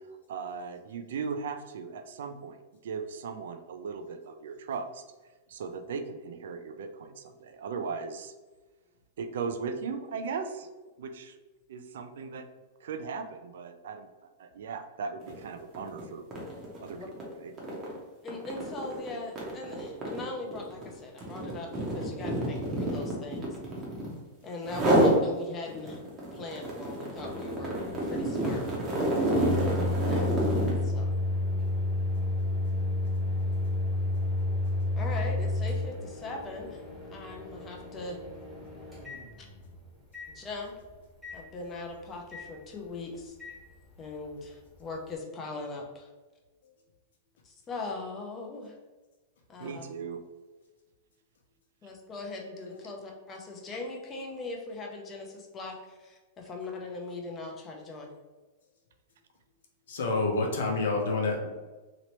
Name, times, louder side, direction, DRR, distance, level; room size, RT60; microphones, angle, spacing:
voice 1, 0.3-5.0 5.5-8.3 9.2-10.7 11.0-11.4 11.7-12.5 12.8-16.2 16.8-17.0 17.3-17.5 49.6-50.2, right 5 dB, 75° right, 7 dB, 0.4 m, -37 dB
sound 1, 15.2-15.4 15.7-24.2 24.6-25.2 25.7-30.8, right 1 dB, 20° right, 0.7 m, -29 dB
voice 2, 18.2-23.5 24.4-26.0 26.3-27.7 28.0-28.6 29.5-30.3 30.8-31.1 35.0-38.2 40.3-40.8 41.3-43.4 44.0-46.1 47.4-48.8 49.5-49.8 51.8-58.1, left 3 dB, 20° left, 1 dB, 0.5 m, -40 dB
Microwave oven, 27.2-39.7 40.1-40.3 41.2-41.4 42.3-42.5 43.4-43.6, left 2 dB, ahead, 0.9 m, -31 dB
voice 3, 59.9-61.5, left 3 dB, 85° left, 1 dB, 0.8 m, -28 dB
3.0 x 2.9 x 2.9 m, 1.2 s
supercardioid pair, 170°, 0 cm